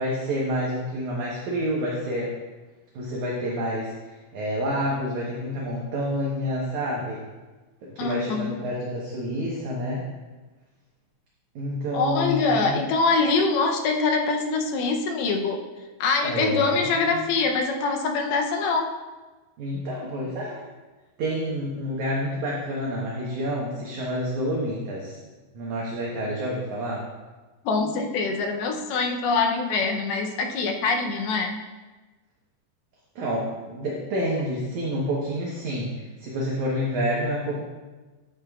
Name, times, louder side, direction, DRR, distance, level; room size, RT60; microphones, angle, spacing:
voice 1, 0.0-2.3 2.9-3.9 4.3-7.2 7.8-10.0 11.6-12.9 16.2-17.3 19.6-20.6 21.2-25.2 25.5-27.0 33.2-37.6, equal, 65° right, -4 dB, 1.9 m, -28 dB
voice 2, 8.0-8.5 11.9-15.6 16.0-18.9 27.7-31.6, left 4 dB, 80° left, 3 dB, 2.5 m, -24 dB
11.5 x 8.7 x 2.3 m, 1.2 s
omnidirectional pair, 4.8 m